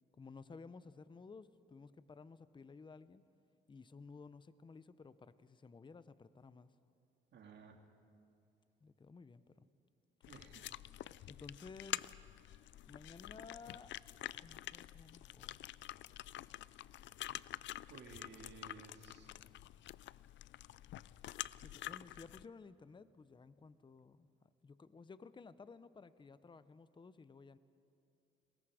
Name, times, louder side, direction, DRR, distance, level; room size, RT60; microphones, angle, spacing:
voice 1, 0.1-3.2 3.7-6.8 8.8-9.7 11.3-12.2 12.9-13.9 14.4-15.7 21.6-27.6, left 4 dB, 25° left, 14 dB, 0.7 m, -55 dB
voice 2, 7.3-7.8 10.3-10.7 11.0-11.3 17.9-19.3, right 5 dB, 60° right, 4 dB, 2.2 m, -56 dB
sound 1, 10.2-22.5, left 14 dB, 70° left, 0.4 m, -48 dB
30.0 x 21.0 x 5.0 m, 2.7 s
cardioid pair, 90°, 20 cm